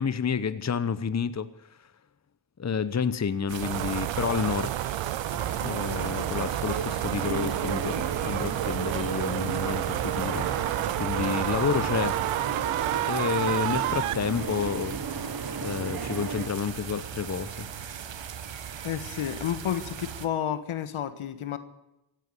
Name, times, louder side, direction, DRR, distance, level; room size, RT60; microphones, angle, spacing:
voice 1, 0.0-1.5 2.6-4.7 5.6-10.7 11.0-12.3 13.0-15.3 15.6-17.7, left 6 dB, 35° left, 14 dB, 1.0 m, -30 dB
sound 1, 3.5-20.3, right 8 dB, 60° right, 1.5 m, -39 dB
sound 2, 3.6-14.1, right 15 dB, 80° right, 0.7 m, -30 dB
sound 3, 5.3-16.5, right 5 dB, 45° right, 1.9 m, -35 dB
voice 2, 18.8-21.6, left 10 dB, 75° left, 12 dB, 1.6 m, -31 dB
16.5 x 9.2 x 9.5 m, 0.90 s
supercardioid pair, 50°, 50 cm